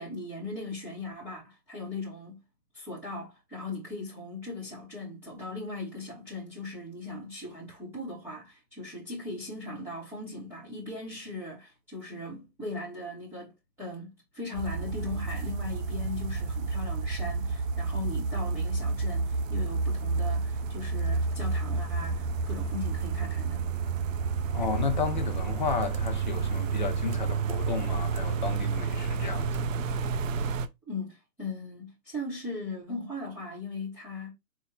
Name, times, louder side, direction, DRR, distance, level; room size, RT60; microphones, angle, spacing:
voice 1, 0.0-2.4 2.7-23.7 30.9-34.3, left 2 dB, 5° right, 0.7 m, -39 dB
sound 1, 14.5-30.7, right 4 dB, 55° right, 0.5 m, -30 dB
voice 2, 24.5-29.6, left 6 dB, 30° left, 0.4 m, -33 dB
4.4 x 2.0 x 3.6 m
hypercardioid pair, 140°, 49 cm